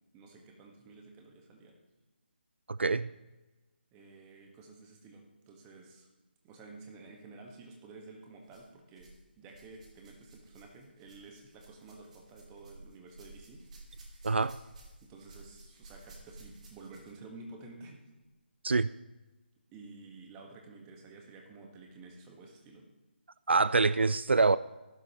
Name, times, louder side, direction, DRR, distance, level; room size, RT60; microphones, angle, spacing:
voice 1, 0.1-1.8 3.9-6.1 6.4-13.6 15.0-18.0 19.7-22.9, right 3 dB, 15° right, 1.5 m, -51 dB
voice 2, 2.7-3.1 14.2-14.6 18.6-18.9 23.5-24.6, right 3 dB, 80° right, 0.4 m, -25 dB
sound 1, 7.5-7.7 8.5-9.2 9.5-17.3 18.2-18.3 19.1-19.2, right 2 dB, 40° right, 2.7 m, -54 dB
15.5 x 11.5 x 3.1 m
figure-of-eight pair, 155°, 6 cm